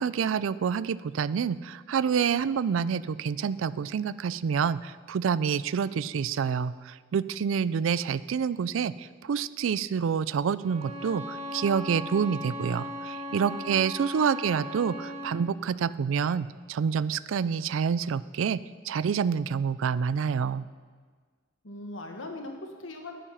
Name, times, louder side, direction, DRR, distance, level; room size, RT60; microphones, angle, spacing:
voice 1, 0.0-20.7, right 6 dB, 90° right, 17 dB, 0.4 m, -28 dB
Bowed string instrument, 10.6-15.5, equal, 35° right, 1.1 m, -37 dB
voice 2, 13.3-13.7 21.6-23.2, left 2 dB, 80° left, 3 dB, 1.5 m, -40 dB
10.0 x 8.9 x 5.8 m, 1.5 s
head